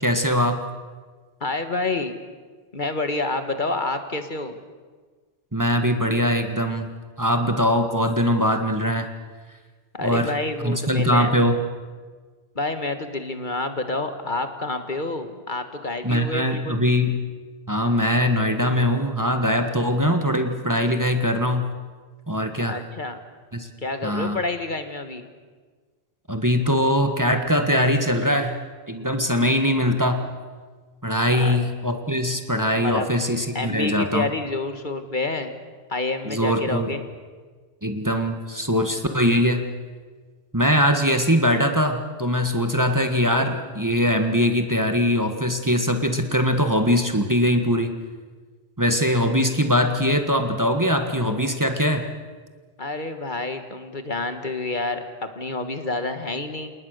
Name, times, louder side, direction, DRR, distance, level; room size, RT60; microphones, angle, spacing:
voice 1, 0.0-0.6 5.5-6.9 7.2-9.1 10.0-10.3 10.6-11.5 16.0-17.1 17.7-21.7 22.3-22.8 23.5-23.7 24.0-24.4 26.3-28.6 28.9-30.2 31.0-34.3 36.2-36.9 37.8-39.6 40.5-47.9 48.8-52.0, equal, 20° right, 5 dB, 1.6 m, -21 dB
voice 2, 1.4-2.2 2.7-4.6 9.9-11.3 12.5-16.8 22.7-23.2 23.8-25.3 31.3-31.6 32.8-33.1 33.5-35.6 35.9-37.0 52.8-56.7, left 2 dB, 50° left, 8 dB, 1.7 m, -28 dB
29.0 x 19.5 x 6.6 m, 1.5 s
omnidirectional pair, 1.0 m